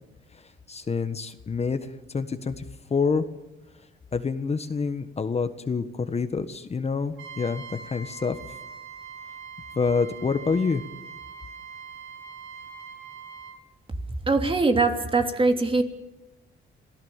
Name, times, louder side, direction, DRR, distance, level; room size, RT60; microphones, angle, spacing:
voice 1, 0.7-2.6 2.9-3.2 4.1-8.4 9.7-10.8, left 5 dB, 30° left, 9 dB, 1.5 m, -27 dB
Trumpet, 7.2-13.6, right 6 dB, 75° right, 4.6 m, -42 dB
voice 2, 14.2-15.8, right 3 dB, 25° right, 5 dB, 3.0 m, -22 dB
26.5 x 17.0 x 7.3 m, 1.1 s
cardioid pair, 90°, 20 cm